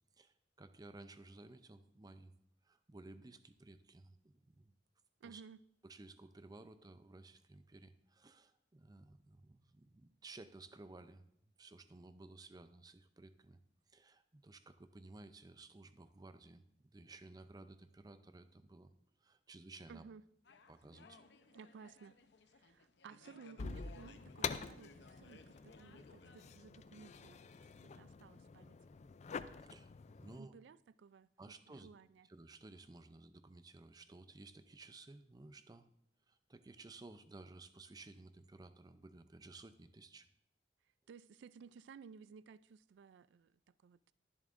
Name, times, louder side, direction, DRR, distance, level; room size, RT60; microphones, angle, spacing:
voice 1, 0.2-2.3 2.6-4.7 5.2-5.4 5.8-11.2 11.6-13.6 13.9-18.9 19.2-20.0 20.7-21.2 29.6-30.5 31.4-31.9 32.3-35.9 36.3-40.3, right 2 dB, 20° right, 0.5 m, -56 dB
voice 2, 5.2-5.6 19.9-20.2 21.5-22.2 22.5-27.5 27.8-28.8 30.4-32.3 41.1-44.0, right 6 dB, 85° right, 0.3 m, -57 dB
sound 1, 20.4-26.5, left 3 dB, 75° left, 0.7 m, -61 dB
sound 2, 23.6-30.4, left 6 dB, 40° left, 0.4 m, -47 dB
21.0 x 7.3 x 2.5 m
head